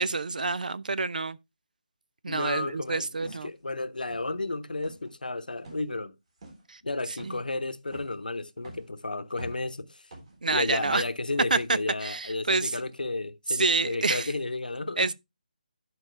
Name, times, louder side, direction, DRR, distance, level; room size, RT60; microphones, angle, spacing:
voice 1, 0.0-1.4 2.2-3.5 6.7-6.8 7.2-7.4 10.4-11.0 11.5-12.8 13.5-14.3 15.0-15.1, right 3 dB, 70° right, 0.6 m, -28 dB
voice 2, 2.3-6.1 6.8-10.0 10.4-15.1, left 2 dB, 85° left, 0.9 m, -33 dB
sound 1, 3.3-3.5 4.1-4.4 4.7-5.1 5.6-5.9 6.4-6.6 7.2-7.5 7.9-8.2 8.6-8.9 9.3-9.7 10.1-10.4 10.8-11.2 11.6-11.7, right 1 dB, 45° right, 3.5 m, -45 dB
11.5 x 4.9 x 3.3 m
figure-of-eight pair, 160°, 5 cm